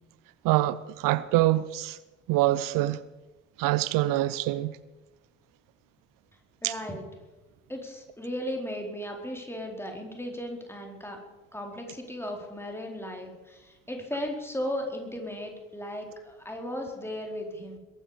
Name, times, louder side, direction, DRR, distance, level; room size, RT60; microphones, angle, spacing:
voice 1, 0.4-2.0 2.3-3.0 3.6-4.8 6.6-6.7, right 16 dB, 55° right, 0.7 m, -25 dB
voice 2, 6.6-7.0 7.7-11.2 11.5-17.8, equal, 5° left, 4.4 m, -36 dB
21.5 x 11.5 x 5.2 m
figure-of-eight pair, 45°, 39 cm